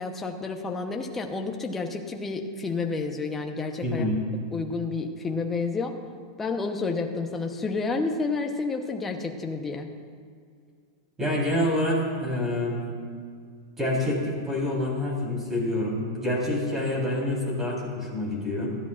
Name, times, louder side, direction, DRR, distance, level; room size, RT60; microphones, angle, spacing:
voice 1, 0.0-4.1 4.5-5.9 6.4-9.9, left 4 dB, 10° left, 2 dB, 0.9 m, -30 dB
voice 2, 3.8-4.2 11.2-12.8 13.8-18.7, left 1 dB, 10° right, -4 dB, 3.9 m, -27 dB
20.0 x 13.0 x 2.5 m, 2.1 s
supercardioid pair, 160°, 2 cm